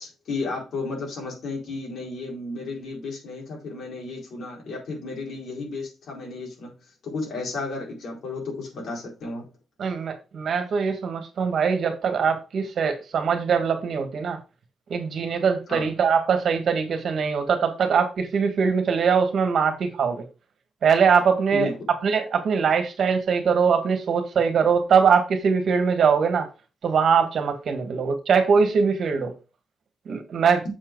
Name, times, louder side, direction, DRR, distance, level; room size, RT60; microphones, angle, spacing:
voice 1, 0.0-6.7 7.0-9.5 15.7-15.9 21.5-21.8 27.8-27.9, left 3 dB, 65° left, 4.5 m, -33 dB
voice 2, 9.8-14.4 14.9-20.2 20.8-21.7 22.0-26.5 26.8-29.3 30.1-30.6, right 6 dB, 55° right, 1.7 m, -22 dB
7.2 x 4.8 x 4.7 m
cardioid pair, 140°, 0 cm